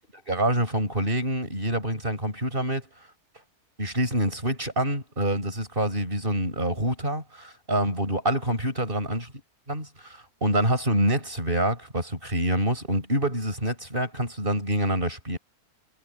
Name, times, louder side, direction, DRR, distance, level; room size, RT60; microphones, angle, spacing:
voice 1, 0.3-2.8 3.8-9.3 9.7-15.4, right 1 dB, 35° right, 6.7 m, -26 dB
omnidirectional pair, 1.6 m